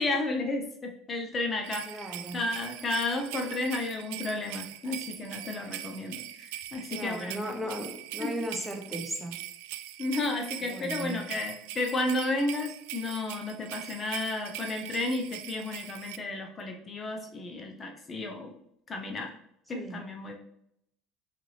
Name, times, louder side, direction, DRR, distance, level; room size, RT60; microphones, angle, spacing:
voice 1, 0.0-2.0 2.3-7.4 8.2-8.3 10.0-18.5 18.9-19.3 19.7-20.3, left 2 dB, 30° left, 3 dB, 0.8 m, -32 dB
sound 1, 1.6-16.2, right 14 dB, 80° right, 0.3 m, -42 dB
voice 2, 1.9-2.4 6.9-9.4 10.6-11.3 19.7-20.0, equal, 5° right, 3 dB, 0.9 m, -36 dB
4.2 x 3.9 x 3.3 m, 0.73 s
supercardioid pair, 100°, 0 cm